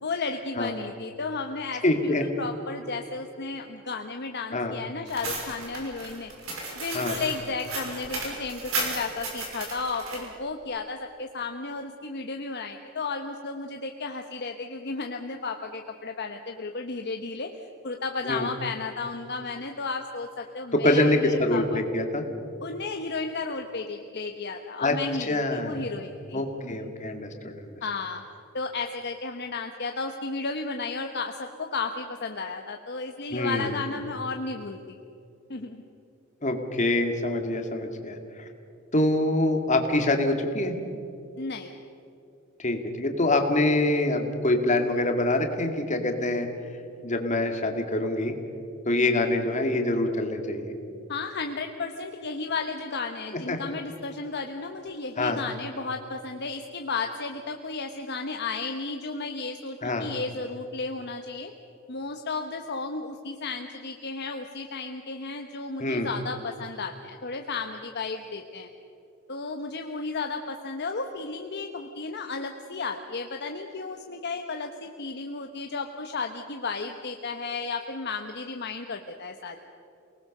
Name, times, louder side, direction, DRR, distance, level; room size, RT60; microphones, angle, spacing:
voice 1, 0.0-6.3 6.7-17.5 17.8-21.8 22.6-26.9 27.8-28.2 28.5-35.0 35.5-35.8 41.4-41.8 49.0-49.3 51.1-61.5 61.9-68.7 69.3-79.6, left 4 dB, 55° left, 4 dB, 1.1 m, -33 dB
voice 2, 1.8-2.2 4.5-4.7 6.9-7.2 18.2-18.5 20.7-22.2 24.8-24.9 25.2-25.9 26.3-27.8 33.3-33.8 36.4-38.5 38.9-40.7 42.6-46.5 47.0-48.3 48.9-50.7 53.5-53.6 55.2-55.4 59.8-60.1 65.8-66.1, left 1 dB, 35° left, 4 dB, 2.3 m, -25 dB
sound 1, 5.1-10.2, right 3 dB, 85° right, 6.3 m, -34 dB
28.5 x 19.5 x 6.7 m, 2.7 s
head